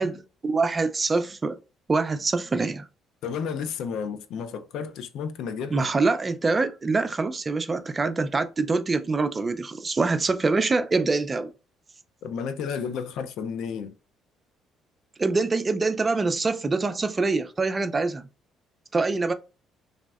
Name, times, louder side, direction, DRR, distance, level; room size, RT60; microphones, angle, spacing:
voice 1, 0.0-1.6 1.9-2.9 5.7-11.5 15.2-18.2 18.9-19.3, right 3 dB, 25° right, 0.3 m, -25 dB
voice 2, 3.2-5.9 12.2-13.9, left 6 dB, 75° left, 0.3 m, -32 dB
3.3 x 2.1 x 2.3 m
cardioid pair, 105°, 0 cm